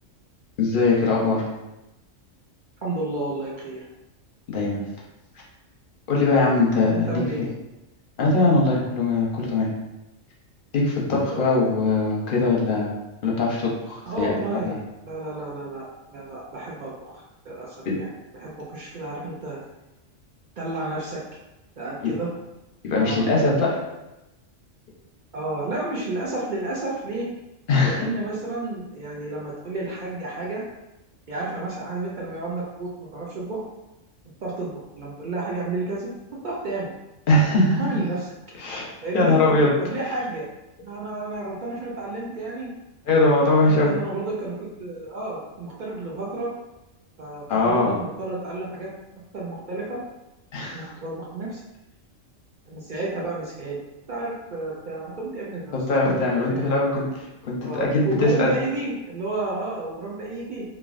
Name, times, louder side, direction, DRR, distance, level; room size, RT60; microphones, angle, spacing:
voice 1, 0.6-1.5 4.5-4.8 6.1-7.1 8.2-9.7 10.7-12.9 13.2-14.8 17.9-18.0 22.8-23.8 27.7-28.0 37.3-37.8 38.6-38.9 39.1-39.7 43.1-43.9 47.5-47.9 50.5-50.8 55.7-58.6, left 2 dB, 55° left, -3 dB, 0.6 m, -21 dB
voice 2, 2.8-3.8 6.9-7.5 11.3-11.5 14.1-19.6 20.6-21.2 21.8-22.3 23.0-23.2 23.7-23.8 25.3-27.3 27.8-30.6 31.3-33.6 34.4-36.1 36.4-36.9 37.7-38.3 39.0-39.4 39.8-40.5 40.8-42.7 43.6-46.5 47.2-48.9 49.3-50.0 50.7-51.6 52.7-53.8 54.1-55.8 56.6-56.8 57.6-60.6, right 2 dB, 65° right, -5 dB, 0.4 m, -31 dB
3.2 x 2.3 x 2.4 m, 0.96 s
omnidirectional pair, 1.3 m